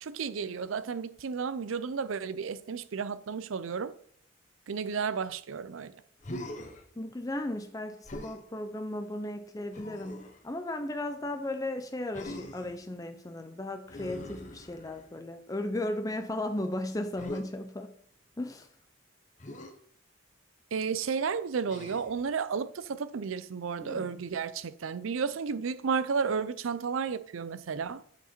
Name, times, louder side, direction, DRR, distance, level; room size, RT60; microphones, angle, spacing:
voice 1, 0.0-3.9 4.7-5.9 20.7-28.0, right 5 dB, 85° right, 0.5 m, -32 dB
Human voice, 6.2-6.8 8.0-8.4 9.7-10.4 12.1-12.8 13.9-15.1 17.2-17.4 19.4-19.7 21.7-22.2 23.8-24.3, left 1 dB, 35° left, 0.9 m, -42 dB
voice 2, 7.0-17.9 18.4-18.7, left 1 dB, 15° left, 0.5 m, -35 dB
8.2 x 4.9 x 4.4 m
head